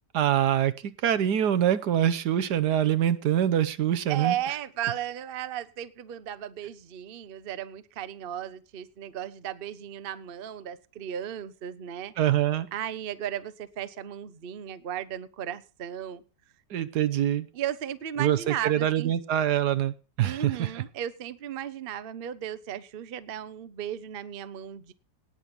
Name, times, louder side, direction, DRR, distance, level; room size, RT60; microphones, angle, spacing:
voice 1, 0.1-4.3 12.2-12.7 16.7-17.5 18.2-20.7, right 10 dB, 75° right, 14 dB, 1.4 m, -25 dB
voice 2, 4.1-12.1 12.7-16.2 17.5-19.1 20.2-24.9, right 10 dB, 45° right, 13 dB, 0.8 m, -35 dB
18.5 x 6.3 x 5.2 m, 0.34 s
omnidirectional pair, 1.8 m